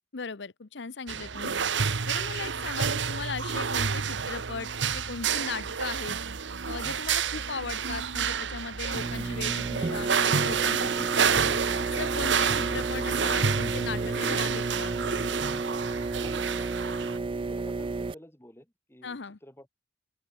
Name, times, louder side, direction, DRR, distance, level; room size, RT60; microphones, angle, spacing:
voice 1, 0.1-1.5 2.1-6.2 6.7-11.5 11.9-14.9 19.0-19.4, left 5 dB, 70° left, 0.8 m, -38 dB
sound 1, 1.1-17.2, right 6 dB, 75° right, 1.1 m, -29 dB
sound 2, 8.9-18.1, right 3 dB, 30° right, 0.3 m, -32 dB
voice 2, 16.2-16.7 17.1-19.7, left 1 dB, 15° left, 2.4 m, -52 dB
open air
head